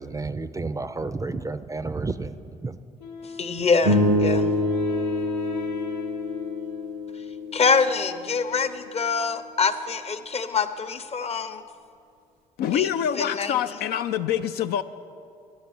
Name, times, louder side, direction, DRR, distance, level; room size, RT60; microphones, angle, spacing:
voice 1, 0.0-2.8, right 3 dB, 20° right, 0.5 m, -31 dB
Wind instrument woodwind instrument, 3.0-7.8, left 5 dB, 90° left, 0.9 m, -40 dB
voice 2, 3.4-4.5 7.5-11.6 12.7-12.9 13.2-13.5, left 5 dB, 35° left, 0.8 m, -25 dB
sound 1, 3.8-8.3, left 1 dB, 80° right, 1.0 m, -26 dB
voice 3, 12.6-14.8, left 9 dB, 70° left, 0.4 m, -25 dB
10.5 x 7.1 x 7.7 m
hypercardioid pair, 55°, 17 cm